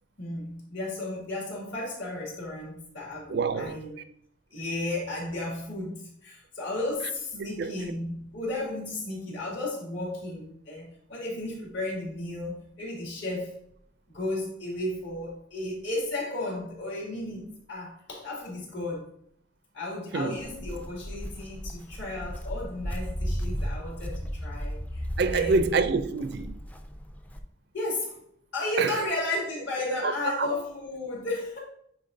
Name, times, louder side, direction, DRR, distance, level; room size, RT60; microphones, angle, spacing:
voice 1, 0.2-4.0 4.5-13.6 14.1-19.1 19.7-25.0 25.3-25.8 27.7-28.2 28.5-31.6, left 2 dB, 65° left, 2.4 m, -34 dB
voice 2, 3.3-3.7 7.6-7.8 20.1-20.4 25.2-26.6 28.8-29.0 30.0-30.5, right 4 dB, 55° right, 0.4 m, -26 dB
Walk footsteps, 20.4-27.4, equal, 10° left, 0.4 m, -35 dB
9.0 x 4.0 x 2.6 m
head